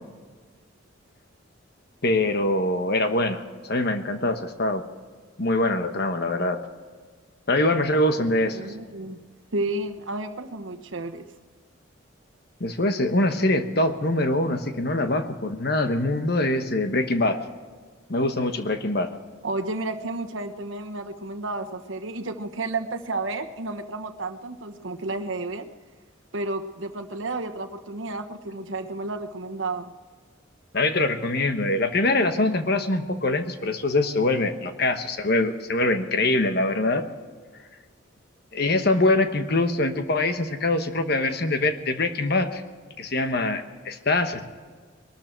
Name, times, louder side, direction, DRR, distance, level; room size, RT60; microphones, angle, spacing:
voice 1, 2.0-4.8 5.4-6.6 7.5-8.6 12.6-17.4 18.1-19.1 30.7-37.1 38.5-42.6 43.0-44.4, left 2 dB, 55° left, 7 dB, 1.2 m, -23 dB
voice 2, 8.5-9.2 9.5-11.3 13.0-13.2 19.4-25.7 26.3-29.9 39.1-39.2, right 2 dB, 75° right, 6 dB, 1.2 m, -32 dB
22.0 x 13.0 x 4.6 m, 1.5 s
head